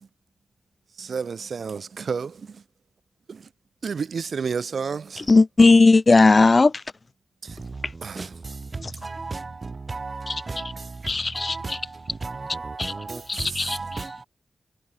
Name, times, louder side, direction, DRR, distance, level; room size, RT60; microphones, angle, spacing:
voice 1, 1.0-2.4 3.3-3.4 3.8-5.3 7.4-7.6 8.0-8.2, right 5 dB, 75° right, 1.9 m, -30 dB
voice 2, 5.3-6.7 11.1-11.6 13.3-13.8, left 3 dB, 45° left, 0.7 m, -16 dB
voice 3, 7.5-14.3, right 3 dB, 45° right, 2.6 m, -35 dB
cardioid pair, 65°, 0 cm